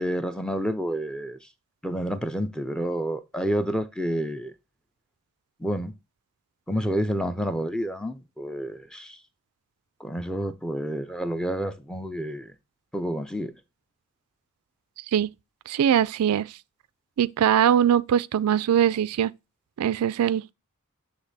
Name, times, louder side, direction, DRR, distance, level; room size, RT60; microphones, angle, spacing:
voice 1, 0.0-1.4 1.8-4.5 5.6-5.9 6.7-9.2 10.0-12.5 12.9-13.5, equal, 5° left, 0.5 m, -29 dB
voice 2, 15.7-16.5 17.2-19.3 19.8-20.5, right 9 dB, 80° right, 0.3 m, -21 dB
7.9 x 3.3 x 4.1 m
head